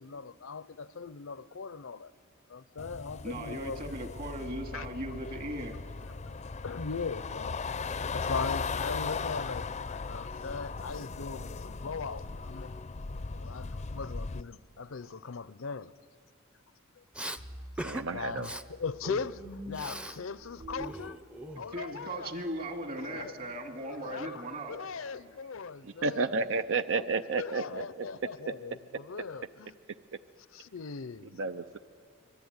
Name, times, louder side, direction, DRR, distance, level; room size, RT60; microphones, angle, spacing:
voice 1, 0.0-2.1 2.5-3.8 4.7-4.9 6.6-7.7 8.1-12.8 13.4-15.9 17.0-17.1 17.8-21.2 21.6-22.3 23.0-23.3 23.8-24.4 24.7-26.5 27.4-29.7 30.5-31.4, left 5 dB, 70° left, 0.6 m, -39 dB
sound 1, 2.8-14.4, left 4 dB, 35° left, 0.5 m, -37 dB
voice 2, 3.2-5.7 21.7-24.8, right 1 dB, 45° right, 2.4 m, -38 dB
Respiratory sounds, 17.1-17.4 17.8-18.1 18.4-18.6 19.0-20.2 20.5-21.9, right 1 dB, 5° right, 0.6 m, -40 dB
sound 2, 17.4-26.5, right 1 dB, 90° right, 3.7 m, -50 dB
voice 3, 17.8-18.5 25.8-28.1 31.4-31.8, right 4 dB, 65° right, 0.6 m, -31 dB
25.0 x 22.0 x 9.6 m
head